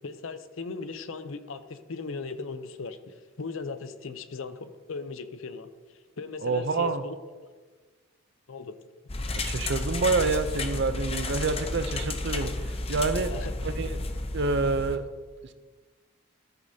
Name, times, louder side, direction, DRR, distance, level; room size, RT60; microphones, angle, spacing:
voice 1, 0.0-5.7 6.2-7.2 8.5-8.7 13.3-13.5, left 4 dB, 75° left, 11 dB, 0.6 m, -38 dB
voice 2, 6.4-7.0 9.3-13.3 13.6-14.0 14.3-15.1, right 3 dB, 55° right, 11 dB, 0.6 m, -27 dB
sound 1, 9.1-15.0, left 2 dB, 30° left, 0.6 m, -32 dB
13.5 x 8.3 x 2.8 m, 1.4 s
head